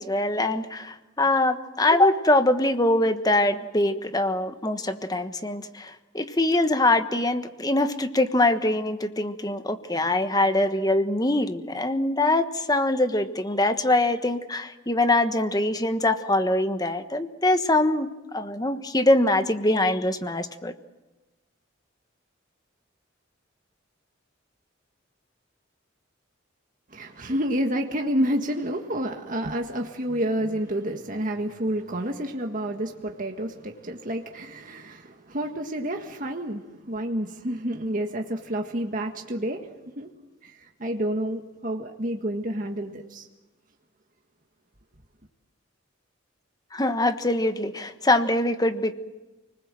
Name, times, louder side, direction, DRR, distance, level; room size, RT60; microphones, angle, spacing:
voice 1, 0.0-20.7 46.7-48.9, left 2 dB, 20° left, 9 dB, 1.3 m, -23 dB
voice 2, 26.9-39.7 40.0-40.1 40.4-43.3, right 1 dB, 45° right, 3 dB, 1.7 m, -29 dB
29.5 x 20.0 x 7.7 m, 1.1 s
head